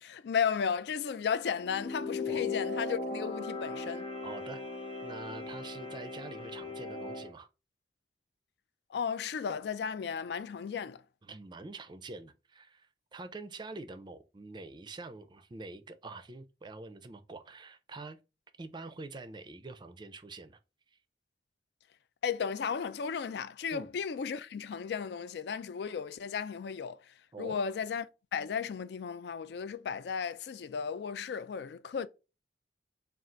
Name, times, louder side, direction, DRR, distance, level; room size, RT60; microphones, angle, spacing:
voice 1, 0.0-4.1 8.9-11.0 22.2-27.0 27.4-28.1 28.3-32.1, left 6 dB, 65° left, 0.3 m, -34 dB
sound 1, 1.6-7.3, left 3 dB, 30° left, 0.9 m, -38 dB
voice 2, 4.2-4.6 5.0-7.5 11.2-18.2 18.6-20.6 20.9-21.0 23.7-23.9 27.3-27.6, right 3 dB, 25° right, 0.4 m, -45 dB
3.7 x 2.4 x 4.3 m
head